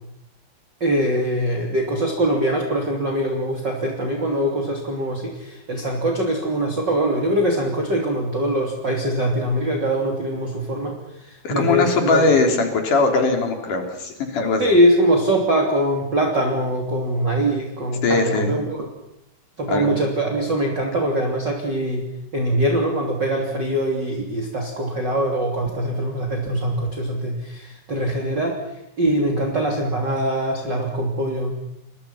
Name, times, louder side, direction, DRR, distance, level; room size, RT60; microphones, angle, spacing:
voice 1, 0.8-12.3 14.6-18.8 19.6-22.1 22.3-28.6 29.0-31.6, right 1 dB, 30° right, 0 dB, 3.4 m, -22 dB
voice 2, 11.4-14.7 18.0-18.5 19.7-19.9, left 3 dB, 55° left, 4 dB, 5.1 m, -20 dB
29.0 x 24.0 x 5.9 m, 0.83 s
omnidirectional pair, 4.6 m